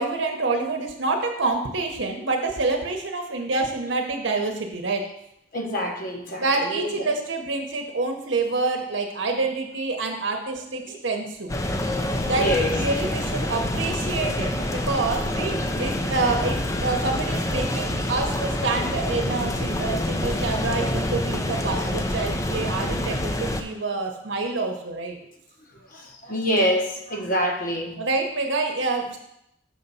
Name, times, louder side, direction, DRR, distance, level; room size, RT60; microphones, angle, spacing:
voice 1, 0.0-5.0 6.4-11.5 12.2-25.2 28.0-29.2, right 3 dB, 70° right, 3 dB, 0.9 m, -27 dB
voice 2, 5.5-7.1 10.0-10.1 10.9-11.0 11.8-12.7 15.5-16.1 16.5-16.8 20.2-20.3 21.7-21.9 25.7-28.0, equal, 45° left, 1 dB, 1.1 m, -28 dB
sound 1, 11.5-23.6, left 1 dB, 15° left, 0.5 m, -27 dB
6.5 x 4.0 x 5.5 m, 0.78 s
head